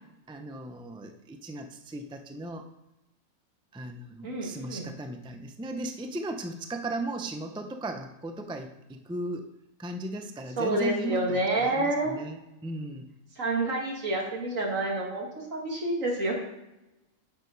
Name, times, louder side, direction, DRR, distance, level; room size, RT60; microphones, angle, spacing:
voice 1, 0.3-2.7 3.7-9.5 9.8-13.1, right 2 dB, 5° right, 6 dB, 0.3 m, -37 dB
voice 2, 4.2-4.9 10.6-12.2 13.4-16.3, right 2 dB, 80° right, -1 dB, 2.4 m, -28 dB
9.5 x 7.2 x 3.9 m, 0.94 s
omnidirectional pair, 1.4 m